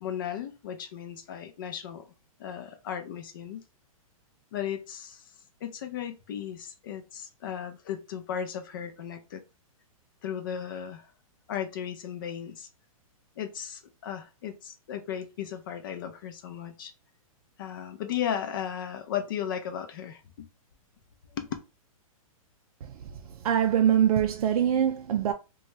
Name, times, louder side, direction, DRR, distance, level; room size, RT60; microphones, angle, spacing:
voice 1, 0.0-2.0 2.4-3.6 4.5-5.2 5.6-9.4 10.2-11.1 11.5-12.7 13.4-16.9 17.6-20.5 21.3-21.5, left 9 dB, 35° left, 0.5 m, -35 dB
voice 2, 23.4-25.3, right 9 dB, 85° right, 0.4 m, -23 dB
2.6 x 2.3 x 3.0 m
hypercardioid pair, 175°, 18 cm